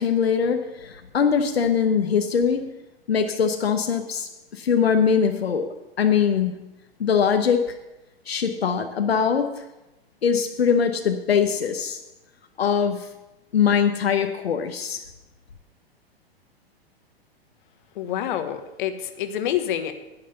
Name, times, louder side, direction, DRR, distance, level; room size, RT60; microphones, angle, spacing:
voice 1, 0.0-2.7 3.1-6.5 7.0-7.7 8.3-9.6 10.2-12.0 12.6-13.1 13.5-15.0, left 7 dB, 75° left, 5 dB, 1.0 m, -22 dB
voice 2, 17.9-19.9, left 10 dB, 55° left, 9 dB, 1.2 m, -27 dB
10.5 x 9.4 x 5.6 m, 0.97 s
figure-of-eight pair, 110°, 31 cm